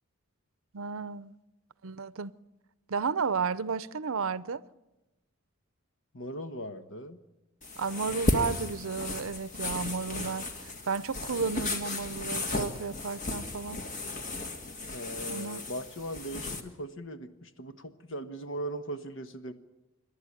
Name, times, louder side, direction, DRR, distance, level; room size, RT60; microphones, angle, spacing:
voice 1, 0.7-1.3 1.8-2.3 2.9-4.6 7.8-13.8 15.3-15.6, right 5 dB, 75° right, 0.6 m, -33 dB
voice 2, 6.1-7.2 14.9-19.5, right 1 dB, 65° left, 1.4 m, -39 dB
sound 1, 7.6-16.6, left 2 dB, 35° left, 1.8 m, -35 dB
27.0 x 12.0 x 9.6 m
head